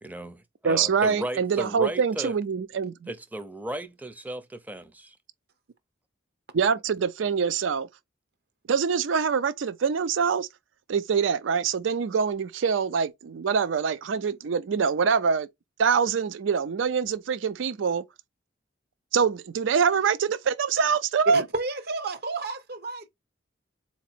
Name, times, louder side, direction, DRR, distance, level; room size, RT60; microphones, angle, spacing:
voice 1, 0.0-2.4 3.1-5.1, right 1 dB, 10° right, 0.5 m, -35 dB
voice 2, 0.6-3.1 6.5-7.9 8.7-10.5 10.9-15.5 15.8-18.0 19.1-21.4, right 6 dB, 85° right, 0.4 m, -24 dB
voice 3, 21.3-23.1, right 3 dB, 55° right, 0.8 m, -31 dB
4.1 x 2.9 x 4.3 m
head